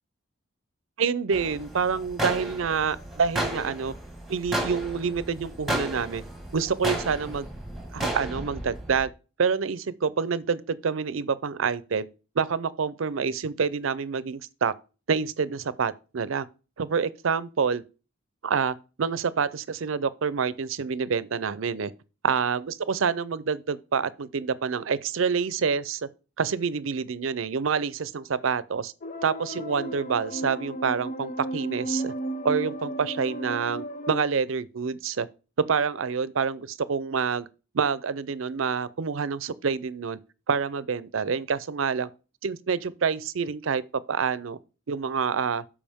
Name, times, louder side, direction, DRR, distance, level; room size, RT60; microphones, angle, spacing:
voice 1, 1.0-3.9 4.3-6.2 6.5-7.5 7.9-9.1 9.4-12.1 12.4-14.7 15.1-16.5 16.8-17.8 18.4-21.9 22.2-26.0 26.4-28.9 29.2-32.1 32.4-35.3 35.6-37.5 37.7-40.2 40.5-42.1 42.4-43.8 44.1-44.6 44.9-45.6, right 6 dB, 85° right, 0.5 m, -27 dB
sound 1, 1.3-9.1, right 1 dB, ahead, 1.6 m, -33 dB
sound 2, 29.0-34.2, right 1 dB, 40° left, 0.6 m, -34 dB
12.5 x 5.0 x 3.6 m
head